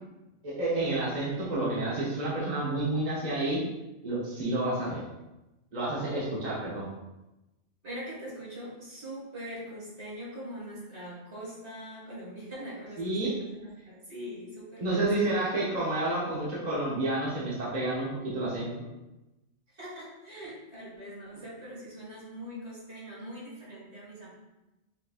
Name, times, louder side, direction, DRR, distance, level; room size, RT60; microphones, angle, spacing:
voice 1, 0.4-3.6 4.0-5.0 5.7-6.9 13.0-13.3 14.8-18.1 18.3-18.7, right 2 dB, 40° right, -7 dB, 1.1 m, -29 dB
voice 2, 7.8-15.4 19.7-24.3, equal, 65° right, -7 dB, 2.2 m, -42 dB
5.4 x 3.9 x 2.4 m, 0.99 s
omnidirectional pair, 1.2 m